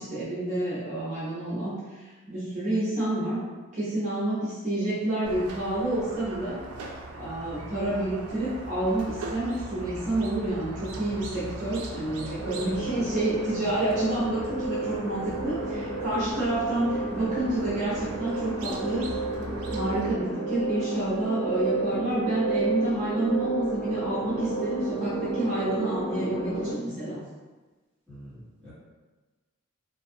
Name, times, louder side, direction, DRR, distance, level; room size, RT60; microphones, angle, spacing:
voice 1, 0.0-3.4 3.7-6.6 7.1-19.1 19.7-27.2, right 1 dB, 35° right, -10 dB, 0.6 m, -29 dB
Squeak, 5.2-20.1, right 2 dB, 85° right, 0.4 m, -40 dB
sound 1, 12.4-26.7, right 2 dB, 30° left, 0.4 m, -32 dB
voice 2, 28.1-28.7, equal, 5° left, -12 dB, 1.0 m, -46 dB
2.5 x 2.3 x 2.6 m, 1.3 s
head